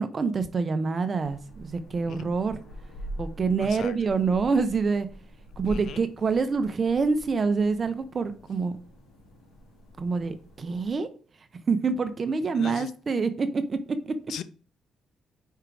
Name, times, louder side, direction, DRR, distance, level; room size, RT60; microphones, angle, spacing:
voice 1, 0.0-2.6 3.2-5.1 5.6-8.7 10.0-11.1 11.7-13.8 14.0-14.1, right 4 dB, 40° right, 10 dB, 0.6 m, -26 dB
sound 1, 1.2-10.9, equal, 85° left, 2.1 m, -44 dB
voice 2, 3.6-4.0 5.7-6.0 12.5-12.9 14.3-14.4, left 9 dB, 70° left, 14 dB, 0.3 m, -38 dB
5.0 x 4.6 x 4.6 m, 0.41 s
cardioid pair, 90°, 0 cm